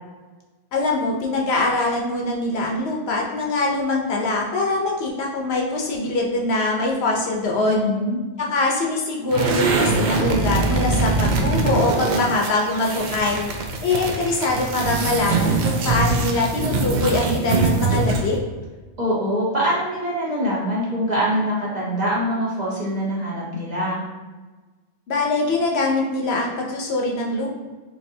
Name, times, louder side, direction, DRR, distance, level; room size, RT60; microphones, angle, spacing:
voice 1, 0.7-7.8 8.4-13.4 13.8-18.4 25.1-27.5, left 2 dB, 70° left, -1 dB, 0.9 m, -23 dB
voice 2, 7.6-8.2 19.0-24.0, equal, 40° right, -7 dB, 1.2 m, -24 dB
sound 1, 9.3-18.4, right 3 dB, 60° right, 0.5 m, -22 dB
4.6 x 2.7 x 2.7 m, 1.3 s
omnidirectional pair, 1.2 m